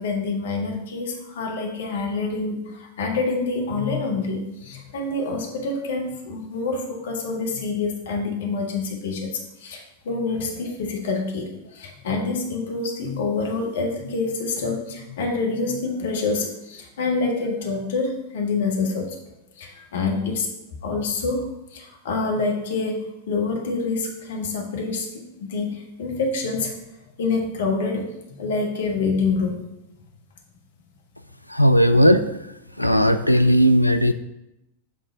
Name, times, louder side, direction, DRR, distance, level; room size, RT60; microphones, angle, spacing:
voice 1, 0.0-9.3 9.6-19.2 19.6-20.5 20.8-21.4 21.7-26.8 27.2-28.0 28.4-29.6, left 3 dB, 60° left, 1 dB, 1.2 m, -26 dB
voice 2, 31.5-32.3 32.8-34.1, equal, 90° left, 8 dB, 0.3 m, -16 dB
5.9 x 3.6 x 5.1 m, 0.90 s
figure-of-eight pair, 90°, 0 cm